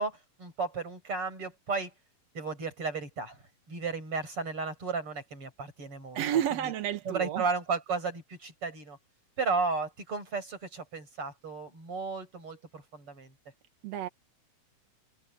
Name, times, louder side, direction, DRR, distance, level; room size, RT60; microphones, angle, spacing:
voice 1, 0.0-1.9 2.3-6.2 6.6-6.7 7.0-9.0 9.4-13.3, right 4 dB, 35° right, 8.0 m, -34 dB
voice 2, 6.1-7.4 13.8-14.1, right 10 dB, 65° right, 1.8 m, -30 dB
omnidirectional pair, 4.2 m